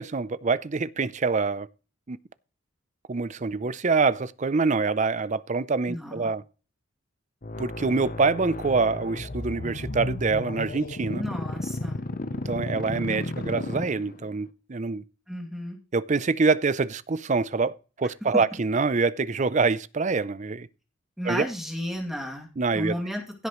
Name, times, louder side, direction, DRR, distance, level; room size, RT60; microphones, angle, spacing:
voice 1, 0.0-1.7 2.1-2.2 3.1-6.4 7.6-11.2 12.5-15.0 15.9-20.7 21.2-21.5 22.6-23.0, right 4 dB, 35° right, 0.5 m, -25 dB
voice 2, 5.9-6.3 11.2-12.0 15.3-15.8 21.2-22.5 22.7-23.5, equal, ahead, 2.5 m, -33 dB
sound 1, 7.4-14.4, left 2 dB, 45° left, 0.8 m, -33 dB
16.0 x 8.1 x 3.1 m
head